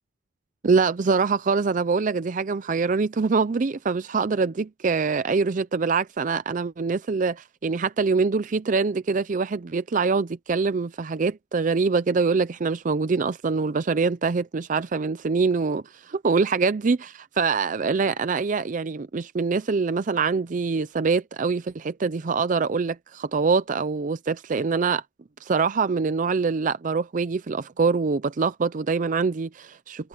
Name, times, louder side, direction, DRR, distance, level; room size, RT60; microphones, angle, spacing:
voice 1, 0.6-25.0 25.4-30.1, right 4 dB, 45° right, 0.5 m, -24 dB
head